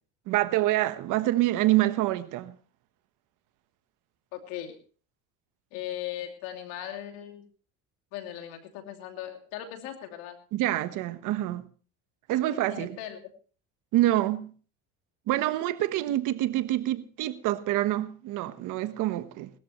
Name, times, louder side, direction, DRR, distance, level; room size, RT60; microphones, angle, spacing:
voice 1, 0.3-2.6 10.5-11.7 12.3-13.0 13.9-14.5 15.3-19.5, right 15 dB, 70° right, 1.2 m, -26 dB
voice 2, 4.3-4.8 5.7-7.4 8.1-10.4 12.5-13.2, left 11 dB, 85° left, 2.8 m, -38 dB
19.5 x 13.5 x 3.1 m
supercardioid pair, 90°, 32 cm